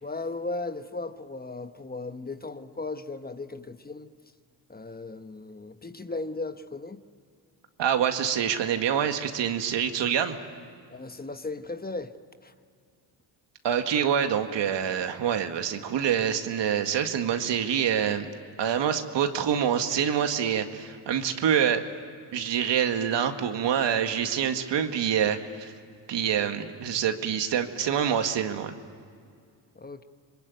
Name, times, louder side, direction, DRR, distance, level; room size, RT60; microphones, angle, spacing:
voice 1, 0.0-4.1 4.7-7.0 10.9-12.1 12.4-12.5 29.7-30.0, left 3 dB, 20° left, 9 dB, 1.2 m, -36 dB
voice 2, 7.8-10.4 13.6-18.3 18.6-21.9 22.3-25.7 26.1-28.7, right 8 dB, 65° right, 6 dB, 2.1 m, -26 dB
26.0 x 22.0 x 9.4 m, 2.2 s
cardioid pair, 75°, 46 cm